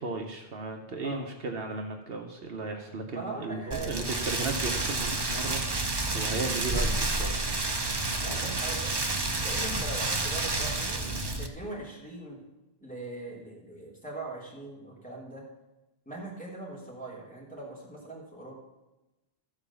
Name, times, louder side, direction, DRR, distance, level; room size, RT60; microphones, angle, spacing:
voice 1, 0.0-7.6, right 3 dB, 65° right, 3 dB, 1.1 m, -36 dB
voice 2, 3.1-4.1 8.2-8.9 9.4-12.4 12.8-15.4 16.0-18.5, right 2 dB, 10° left, -5 dB, 3.4 m, -41 dB
Rain, 3.7-11.5, right 2 dB, 25° right, 0.7 m, -30 dB
14.5 x 4.9 x 7.0 m, 1.0 s
omnidirectional pair, 1.1 m